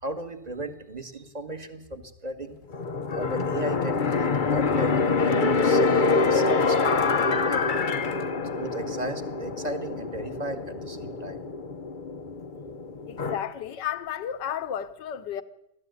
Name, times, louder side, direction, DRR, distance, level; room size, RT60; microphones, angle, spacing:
voice 1, 0.0-2.6 3.1-5.0 5.2-5.8 6.1-7.7 8.4-11.4, right 1 dB, 25° right, 1.6 m, -36 dB
sound 1, 2.7-13.4, left 4 dB, 40° left, 0.8 m, -25 dB
voice 2, 13.1-15.4, left 9 dB, 75° left, 1.6 m, -32 dB
20.0 x 14.0 x 9.4 m
omnidirectional pair, 1.9 m